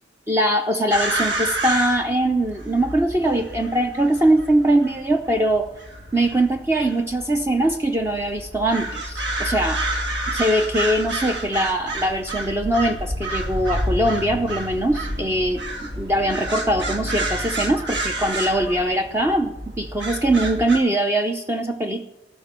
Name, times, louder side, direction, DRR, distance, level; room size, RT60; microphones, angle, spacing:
voice 1, 0.3-5.7 6.1-9.8 10.3-22.1, right 1 dB, 15° right, 5 dB, 0.6 m, -22 dB
sound 1, 0.9-20.8, right 1 dB, 80° right, 2.1 m, -29 dB
14.5 x 6.0 x 8.9 m, 0.92 s
head